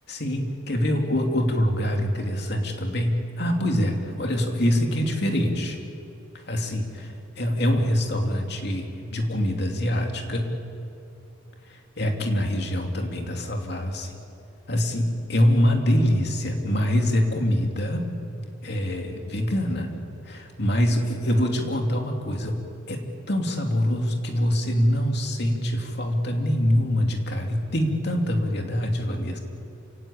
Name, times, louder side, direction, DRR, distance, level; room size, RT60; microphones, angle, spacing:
voice 1, 0.1-5.8 6.5-10.5 11.7-14.1 14.7-18.1 18.6-19.9 20.3-22.6 22.9-29.4, equal, 60° left, 2 dB, 2.7 m, -24 dB
28.0 x 17.0 x 8.8 m, 2.6 s
head